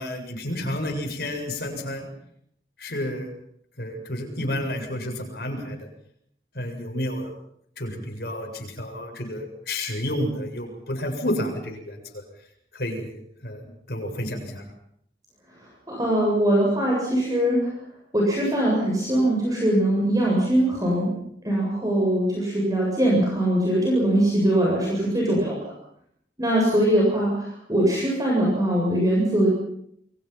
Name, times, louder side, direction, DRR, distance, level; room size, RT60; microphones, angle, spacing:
voice 1, 0.0-2.1 2.8-3.3 3.8-5.9 6.5-7.3 7.8-12.2 12.7-14.6, left 1 dB, 60° left, 3 dB, 7.6 m, -30 dB
voice 2, 15.9-17.6 18.1-21.1 21.4-25.7 26.4-29.5, right 1 dB, 20° right, -3 dB, 7.9 m, -22 dB
29.0 x 24.0 x 6.0 m, 0.69 s
head